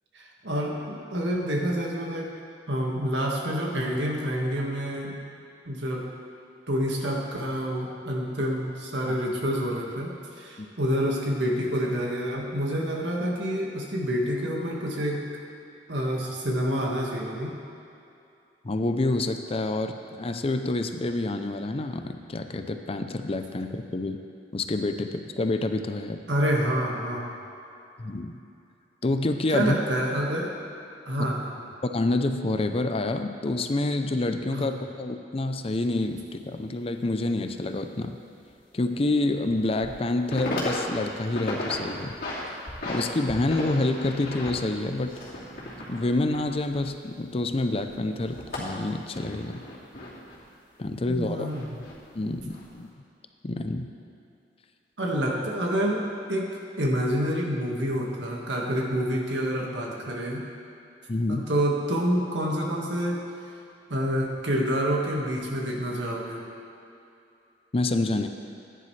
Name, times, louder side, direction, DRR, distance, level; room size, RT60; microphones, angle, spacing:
voice 1, 0.1-2.3 2.7-5.1 5.6-6.1 6.7-15.2 15.9-17.5 26.3-27.3 29.5-30.5 31.0-31.5 34.5-34.7 51.1-51.8 55.0-60.4 61.3-63.2 63.9-66.4, equal, 85° right, -1 dB, 1.7 m, -28 dB
voice 2, 18.6-24.2 24.5-26.2 28.0-28.4 29.0-29.8 31.2-31.3 31.9-38.2 38.7-42.1 42.9-45.1 45.9-49.6 50.8-51.5 52.1-52.9 53.4-53.9 61.1-61.5 67.7-68.3, left 2 dB, 35° left, 7 dB, 0.5 m, -27 dB
sound 1, 35.6-35.7 36.1-36.2 38.4-38.5 39.0-39.1 39.6-40.0 40.2-40.8 41.1-41.8 42.1-43.0 43.3-47.3 47.5-50.4 51.1-51.9 52.4-52.7, left 1 dB, 55° left, 2.6 m, -35 dB
15.0 x 10.0 x 3.3 m, 2.7 s
head